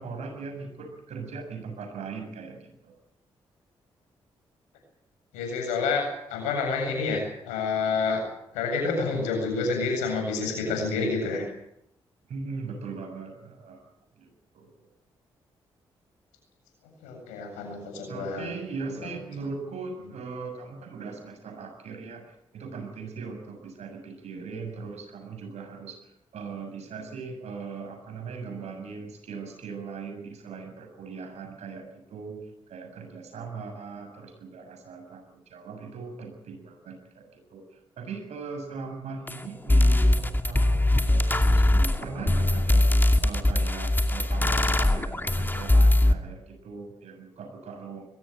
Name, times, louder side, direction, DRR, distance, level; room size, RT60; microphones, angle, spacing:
voice 1, 0.0-3.0 12.3-13.8 14.2-14.9 18.1-32.4 32.7-48.0, right 4 dB, 65° right, 5 dB, 7.1 m, -39 dB
voice 2, 5.3-8.2 8.5-11.5 17.0-18.5 18.9-19.1, left 4 dB, 85° left, 3 dB, 7.9 m, -28 dB
sound 1, 39.3-39.4 39.7-46.1, left 1 dB, 15° left, 2.4 m, -21 dB
22.0 x 18.0 x 9.1 m, 0.77 s
hypercardioid pair, 40°, 12 cm